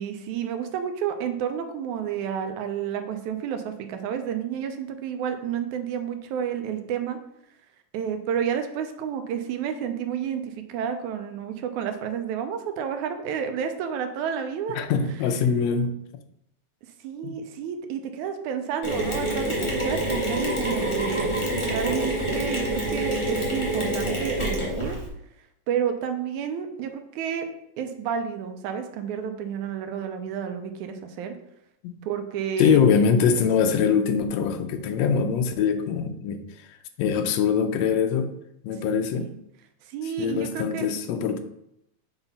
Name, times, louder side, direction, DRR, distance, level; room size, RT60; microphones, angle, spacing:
voice 1, 0.0-7.2 7.9-14.8 17.0-21.3 21.6-25.0 25.7-27.5 27.8-31.4 32.1-32.8 38.9-39.3 39.8-40.9, right 8 dB, 90° right, 7 dB, 2.2 m, -30 dB
voice 2, 14.7-16.0 17.2-17.3 31.8-31.9 32.6-36.4 37.0-38.3 38.6-39.3 40.2-41.4, left 6 dB, 75° left, 7 dB, 1.7 m, -23 dB
Mechanisms, 18.8-25.1, right 1 dB, 15° left, 1.1 m, -27 dB
7.0 x 4.1 x 5.5 m, 0.79 s
omnidirectional pair, 3.4 m